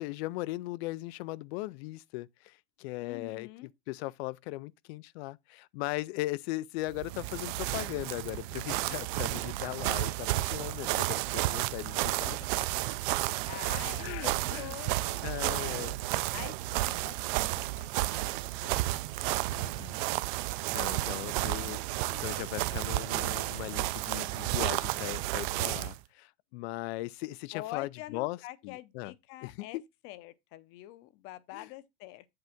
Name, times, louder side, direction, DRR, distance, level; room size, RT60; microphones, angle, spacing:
voice 1, 0.0-12.8 14.0-14.8 15.2-16.0 19.5-20.0 20.7-28.4 28.6-29.1 29.4-29.8 31.5-31.7, left 19 dB, 80° left, 0.5 m, -38 dB
voice 2, 3.0-3.7 13.5-15.9 16.3-17.9 18.2-18.7 21.2-22.3 27.5-29.8 30.0-32.3, left 15 dB, 45° left, 0.6 m, -46 dB
sound 1, 6.9-26.0, right 19 dB, 55° right, 0.5 m, -32 dB
7.9 x 3.4 x 5.8 m
cardioid pair, 175°, 31 cm